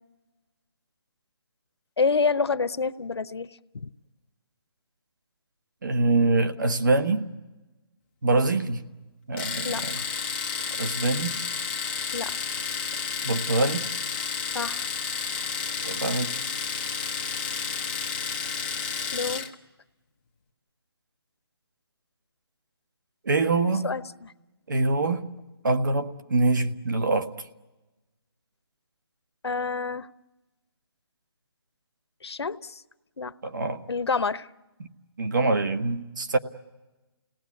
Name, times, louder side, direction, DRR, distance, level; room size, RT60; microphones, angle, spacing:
voice 1, 2.0-3.5 3.7-3.9 9.6-9.9 12.1-12.3 14.5-14.9 19.1-19.5 23.8-24.3 29.4-30.1 32.2-32.8 33.2-33.3 33.9-34.5, left 4 dB, 85° left, 13 dB, 0.9 m, -28 dB
voice 2, 5.8-7.3 8.2-8.8 9.3-10.0 10.8-11.4 13.2-13.9 15.8-16.4 23.2-23.9 24.7-25.3 25.6-27.3 33.4-33.8 34.8-34.9 35.2-36.4, right 3 dB, 50° right, 8 dB, 1.3 m, -24 dB
Domestic sounds home sounds, 9.4-19.5, left 6 dB, 25° left, 1.2 m, -31 dB
29.5 x 18.5 x 8.4 m, 1.1 s
hypercardioid pair, 175°, 13 cm